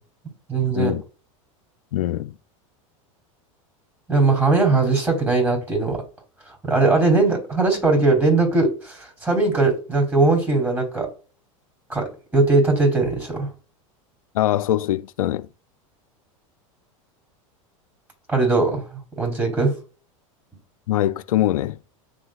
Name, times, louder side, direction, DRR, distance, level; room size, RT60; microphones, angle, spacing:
voice 1, 0.5-0.9 4.1-6.0 6.6-11.1 11.9-13.5 18.3-18.8 19.2-19.7, right 3 dB, 10° right, 3.4 m, -20 dB
voice 2, 1.9-2.3 14.3-15.5 20.9-21.8, left 13 dB, 85° left, 0.4 m, -22 dB
10.0 x 3.9 x 2.4 m
hypercardioid pair, 100°, 17 cm